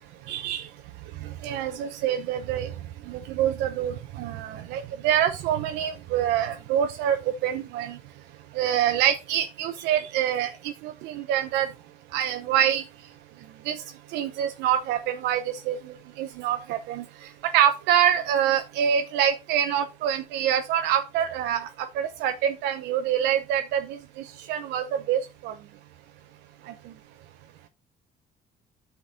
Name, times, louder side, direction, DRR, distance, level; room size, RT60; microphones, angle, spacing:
voice 1, 0.3-0.7 1.2-2.7 3.1-8.0 8.5-11.7 12.1-12.8 13.6-13.8 14.1-25.5 26.7-26.8, right 10 dB, 90° right, 7 dB, 0.8 m, -26 dB
9.0 x 4.8 x 5.1 m, 0.27 s
cardioid pair, 110°, 17 cm